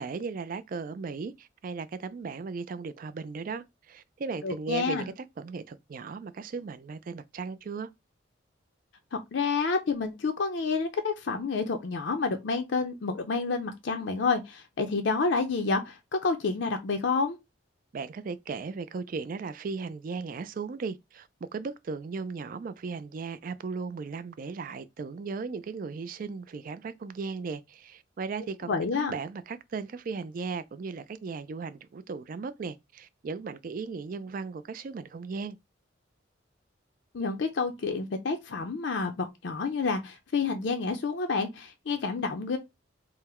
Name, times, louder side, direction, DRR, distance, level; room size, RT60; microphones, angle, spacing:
voice 1, 0.0-7.9 17.9-35.6, right 4 dB, 45° right, 0.3 m, -36 dB
voice 2, 4.4-5.1 9.1-17.4 28.7-29.1 37.1-42.6, left 4 dB, 65° left, 0.5 m, -29 dB
3.8 x 2.1 x 4.2 m
head